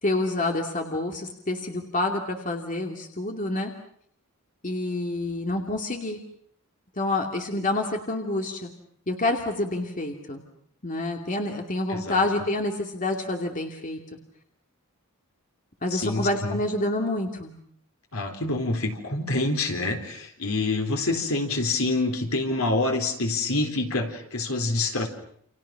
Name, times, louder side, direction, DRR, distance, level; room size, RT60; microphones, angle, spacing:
voice 1, 0.0-3.7 4.6-6.2 7.0-8.7 9.1-10.4 10.8-14.0 15.8-17.5, left 2 dB, 35° left, 3 dB, 2.6 m, -28 dB
voice 2, 11.9-12.3 15.9-16.6 18.1-25.1, left 2 dB, 70° left, 4 dB, 4.1 m, -26 dB
29.5 x 28.5 x 6.0 m, 0.64 s
head